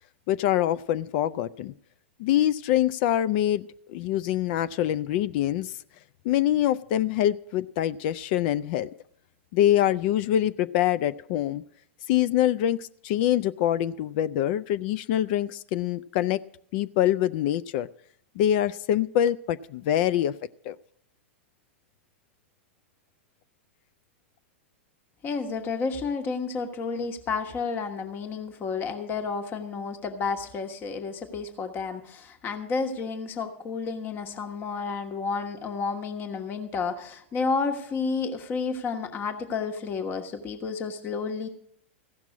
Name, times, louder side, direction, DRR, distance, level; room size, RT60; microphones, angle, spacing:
voice 1, 0.3-1.7 2.2-5.8 6.2-8.9 9.5-11.6 12.1-16.4 16.7-17.9 18.4-20.3 20.6-20.8, left 12 dB, 50° left, 15 dB, 0.4 m, -25 dB
voice 2, 25.2-41.5, left 4 dB, 30° left, 6 dB, 1.3 m, -31 dB
15.5 x 6.0 x 8.2 m, 0.68 s
hypercardioid pair, 100°, 7 cm